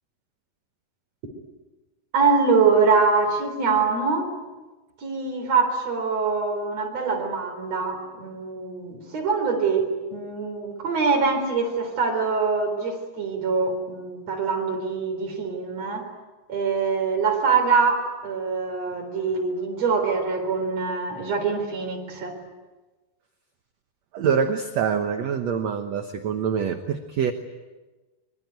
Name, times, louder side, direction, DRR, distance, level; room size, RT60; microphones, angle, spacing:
voice 1, 2.1-4.3 5.0-16.1 16.5-22.3, right 4 dB, 45° right, 3 dB, 5.1 m, -24 dB
voice 2, 24.1-27.3, right 7 dB, 65° right, 7 dB, 1.8 m, -25 dB
25.0 x 23.5 x 9.4 m, 1.2 s
omnidirectional pair, 4.4 m